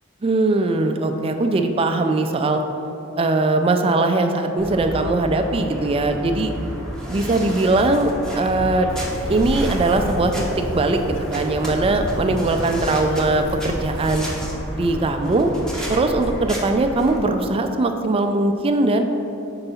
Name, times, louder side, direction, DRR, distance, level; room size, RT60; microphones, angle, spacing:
voice 1, 0.2-2.6 3.2-6.5 7.1-8.9 9.3-10.5 10.7-14.3 14.7-15.5 15.9-19.0, right 2 dB, 25° right, 6 dB, 0.3 m, -20 dB
sound 1, 4.6-17.2, equal, 5° left, 0.8 m, -30 dB
Bird, 8.9-14.2, left 1 dB, 70° left, 0.5 m, -34 dB
4.5 x 3.9 x 5.6 m, 2.8 s
head